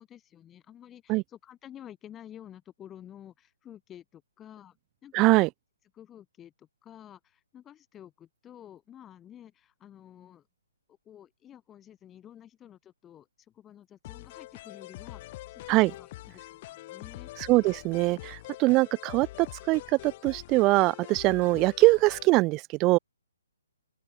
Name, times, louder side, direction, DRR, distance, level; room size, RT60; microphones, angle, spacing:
voice 1, 0.0-4.8 5.0-5.2 5.9-10.5 11.0-17.3, left 10 dB, 10° left, 4.4 m, -50 dB
voice 2, 5.1-5.5 15.7-15.9 17.5-23.0, right 22 dB, 20° right, 0.3 m, -23 dB
sound 1, 14.0-22.3, left 17 dB, 30° left, 1.6 m, -44 dB
open air
hypercardioid pair, 165°, 0 cm